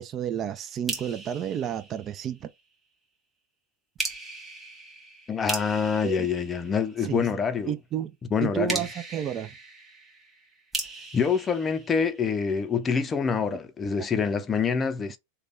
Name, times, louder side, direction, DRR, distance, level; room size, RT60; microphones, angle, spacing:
voice 1, 0.0-2.5 6.0-6.3 7.0-7.3 7.7-8.1 8.4-9.5, right 9 dB, 35° right, 0.4 m, -31 dB
sound 1, 0.9-2.6 4.0-7.3 8.7-12.6, right 3 dB, 10° right, 1.7 m, -38 dB
voice 2, 5.3-7.7 8.3-8.9 11.1-15.2, left 6 dB, 20° left, 0.5 m, -26 dB
3.3 x 2.2 x 3.8 m
hypercardioid pair, 115°, 0 cm